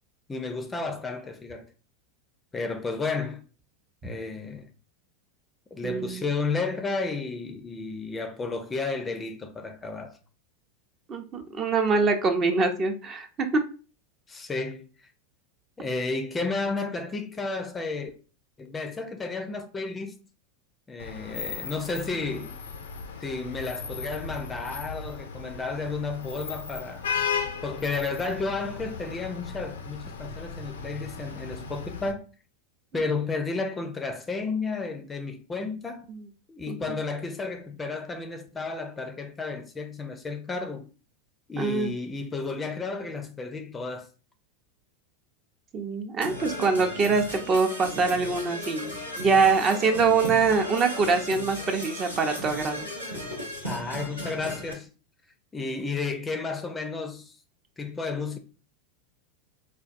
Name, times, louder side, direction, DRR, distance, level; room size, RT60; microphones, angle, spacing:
voice 1, 0.3-1.7 2.5-3.5 4.0-4.7 5.7-10.2 14.3-14.9 15.8-18.1 18.6-20.2 20.9-22.6 23.2-27.1 27.6-32.2 32.9-36.1 36.5-40.9 41.5-44.1 53.6-54.9 55.5-57.3 57.8-58.4, left 3 dB, 20° left, 0.5 m, -32 dB
voice 2, 5.8-6.2 11.1-13.3 36.7-37.0 41.6-41.9 45.7-48.9 49.2-52.9, right 4 dB, 30° right, 0.6 m, -24 dB
Vehicle horn car horn honking / Traffic noise roadway noise, 21.0-32.1, left 6 dB, 75° left, 0.4 m, -36 dB
Percussion / Brass instrument, 46.2-54.7, equal, 90° right, 0.8 m, -36 dB
4.2 x 2.2 x 2.5 m
figure-of-eight pair, 85°, 0 cm